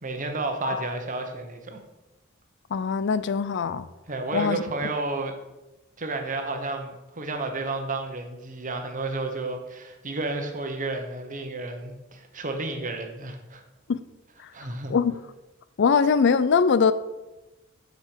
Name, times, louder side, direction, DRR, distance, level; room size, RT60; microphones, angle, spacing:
voice 1, 0.0-1.8 4.1-5.3 6.0-13.6 14.5-14.9, right 2 dB, 40° right, 5 dB, 1.1 m, -31 dB
voice 2, 2.7-3.9 4.3-4.6 13.9-14.0 14.4-14.5 14.9-15.2 15.8-16.9, left 5 dB, 60° left, 14 dB, 0.4 m, -22 dB
7.4 x 6.7 x 5.0 m, 1.0 s
head